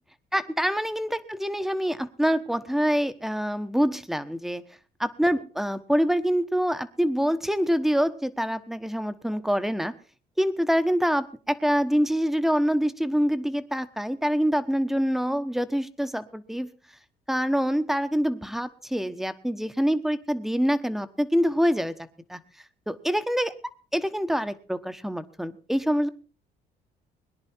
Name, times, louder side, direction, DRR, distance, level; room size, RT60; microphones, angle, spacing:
voice 1, 0.3-4.6 5.0-9.9 10.4-16.7 17.3-21.9 22.3-22.4 22.9-23.5 23.9-26.1, equal, ahead, 10 dB, 1.1 m, -25 dB
22.0 x 10.5 x 4.4 m, 0.39 s
cardioid pair, 110°, 17 cm